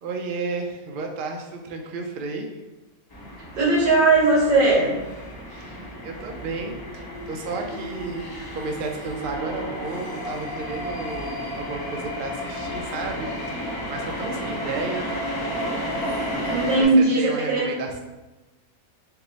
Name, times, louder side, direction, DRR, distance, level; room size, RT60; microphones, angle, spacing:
voice 1, 0.0-2.6 5.5-15.1 16.8-18.0, right 3 dB, 60° right, 2 dB, 0.5 m, -33 dB
sound 1, 3.1-16.8, equal, 25° left, 0.6 m, -32 dB
voice 2, 3.6-5.0 16.5-17.7, right 2 dB, 85° right, -6 dB, 1.9 m, -18 dB
4.6 x 2.1 x 3.9 m, 1.1 s
omnidirectional pair, 1.5 m